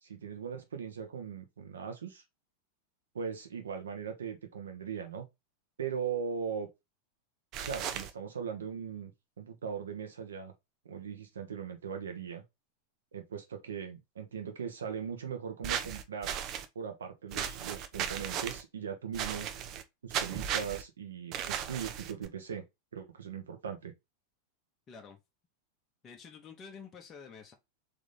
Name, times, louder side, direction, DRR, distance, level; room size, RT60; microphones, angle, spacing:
voice 1, 0.0-2.2 3.1-5.3 5.8-6.7 7.7-10.5 10.8-12.4 13.1-16.3 16.7-19.5 20.0-22.6 22.9-23.9, right 7 dB, 65° right, 1.2 m, -39 dB
sound 1, 7.5-8.1 15.6-16.7 17.3-18.6 19.1-19.8 20.1-20.8 21.3-22.3, right 9 dB, 35° right, 0.6 m, -36 dB
voice 2, 24.9-25.2 26.0-27.5, left 6 dB, 25° left, 1.0 m, -49 dB
3.8 x 3.7 x 3.4 m
figure-of-eight pair, 90°, 0 cm